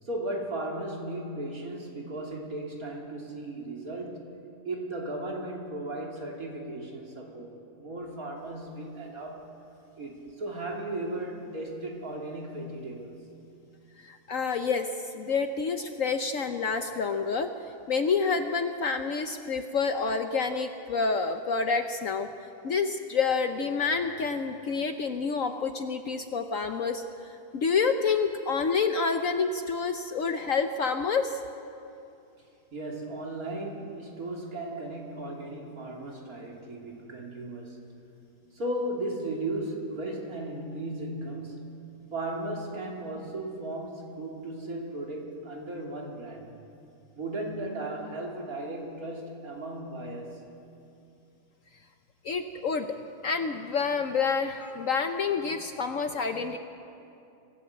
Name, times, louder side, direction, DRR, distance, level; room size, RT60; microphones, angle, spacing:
voice 1, 0.0-4.3 4.6-7.5 7.8-9.5 10.0-13.1 32.7-37.9 38.5-41.8 42.1-46.5 47.2-50.4, right 1 dB, 55° right, -1 dB, 3.2 m, -36 dB
voice 2, 14.0-14.9 15.1-17.5 17.9-22.3 22.6-31.4 52.2-52.9 53.2-56.6, left 5 dB, 55° left, 7 dB, 1.0 m, -28 dB
25.0 x 15.0 x 7.9 m, 2.7 s
omnidirectional pair, 1.9 m